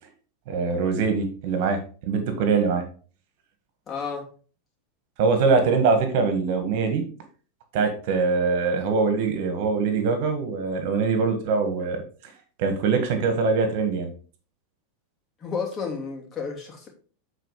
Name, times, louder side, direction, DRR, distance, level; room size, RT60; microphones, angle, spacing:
voice 1, 0.5-2.9 5.2-7.0 7.7-12.0 12.6-14.1, right 4 dB, 60° right, 1.8 m, -23 dB
voice 2, 3.9-4.2 15.4-16.9, left 5 dB, 30° left, 2.8 m, -31 dB
8.0 x 4.5 x 4.8 m
hypercardioid pair, 100°, 0 cm